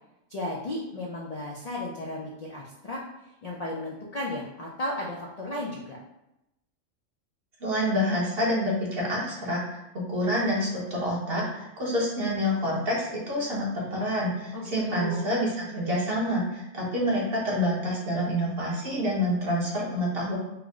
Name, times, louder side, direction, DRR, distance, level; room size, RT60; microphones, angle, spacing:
voice 1, 0.3-3.0 3.4-6.0 14.5-15.3, left 1 dB, 70° left, -2 dB, 0.3 m, -34 dB
voice 2, 7.6-9.8 10.1-20.4, equal, 50° right, -4 dB, 1.2 m, -27 dB
4.5 x 2.0 x 3.6 m, 0.89 s
omnidirectional pair, 1.3 m